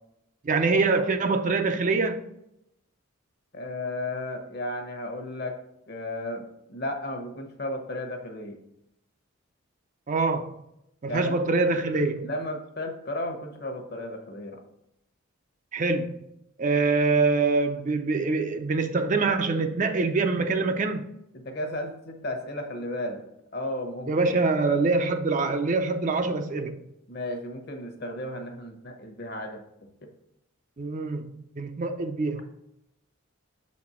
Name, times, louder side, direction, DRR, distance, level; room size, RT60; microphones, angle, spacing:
voice 1, 0.4-2.2 10.1-10.6 11.0-12.3 15.7-16.2 16.6-21.0 24.1-26.8 30.8-31.3 31.6-32.4, right 3 dB, 35° right, 0.5 m, -24 dB
voice 2, 3.5-5.6 5.9-8.6 11.1-11.4 12.2-14.6 21.3-23.2 23.5-24.3 27.1-29.6 30.0-30.1, left 1 dB, 50° left, 1.0 m, -34 dB
6.7 x 4.2 x 4.3 m
head